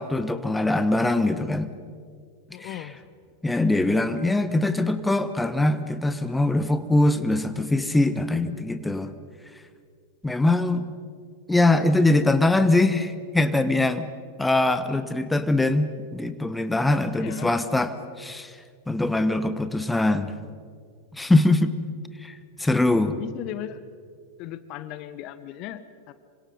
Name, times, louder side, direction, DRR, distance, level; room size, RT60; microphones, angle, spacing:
voice 1, 0.0-1.7 2.6-2.7 3.4-9.1 10.2-10.8 11.5-14.1 14.4-18.5 18.9-20.3 21.1-21.7 22.2-22.3 22.6-23.1, left 2 dB, 5° left, 11 dB, 1.1 m, -22 dB
voice 2, 2.5-3.0 17.1-17.6 22.9-23.8 24.4-26.1, left 12 dB, 40° left, 14 dB, 1.0 m, -37 dB
27.0 x 25.5 x 5.3 m, 2.2 s
figure-of-eight pair, 90°, 0 cm